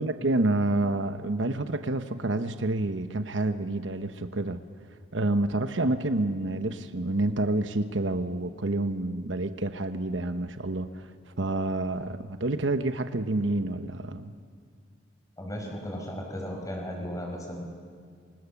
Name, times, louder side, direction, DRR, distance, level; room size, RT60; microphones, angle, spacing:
voice 1, 0.0-4.6 5.1-11.1 11.4-14.3, right 2 dB, 70° right, 9 dB, 1.0 m, -28 dB
voice 2, 15.4-17.7, equal, 15° left, 1 dB, 5.3 m, -35 dB
29.5 x 25.0 x 7.2 m, 2.1 s
head